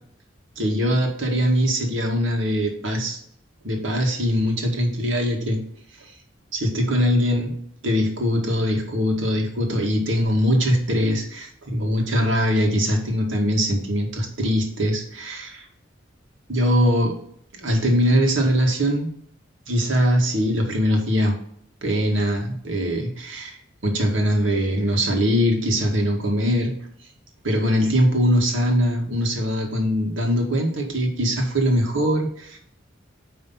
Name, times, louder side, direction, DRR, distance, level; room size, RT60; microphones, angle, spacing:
voice 1, 0.6-3.2 3.6-5.6 6.0-6.1 6.5-7.5 7.8-15.6 16.5-17.2 17.5-19.1 19.7-21.4 21.8-23.6 23.8-26.7 27.4-32.6, equal, 80° right, 2 dB, 1.9 m, -22 dB
9.7 x 3.5 x 5.6 m, 0.67 s
head